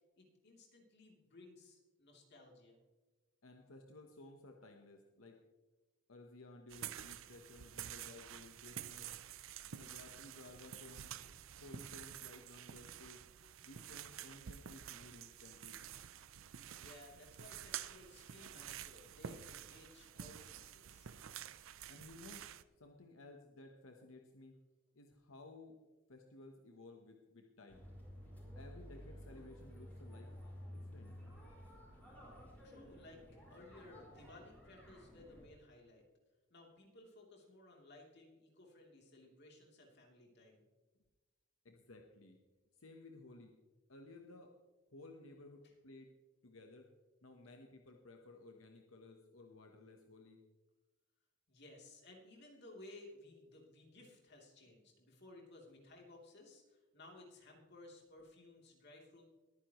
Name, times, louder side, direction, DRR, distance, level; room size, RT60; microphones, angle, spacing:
voice 1, 0.2-2.8 16.8-21.1 32.3-33.2 33.5-36.0 36.5-40.6 51.5-59.3, left 2 dB, 55° left, 0 dB, 3.1 m, -58 dB
voice 2, 3.4-5.4 6.1-9.1 9.7-11.1 11.6-13.2 13.6-15.8 21.9-22.4 22.8-24.6 24.9-25.8 26.1-27.8 28.6-30.3 30.6-31.1 41.6-42.4 42.8-43.5 43.9-44.6 44.9-46.1 46.4-46.9 47.2-50.4, left 2 dB, 85° left, 3 dB, 1.1 m, -56 dB
sound 1, 6.7-22.6, right 10 dB, 80° right, 0.5 m, -50 dB
sound 2, 27.7-35.5, equal, 10° left, 4.9 m, -53 dB
22.0 x 9.8 x 3.1 m, 1.2 s
head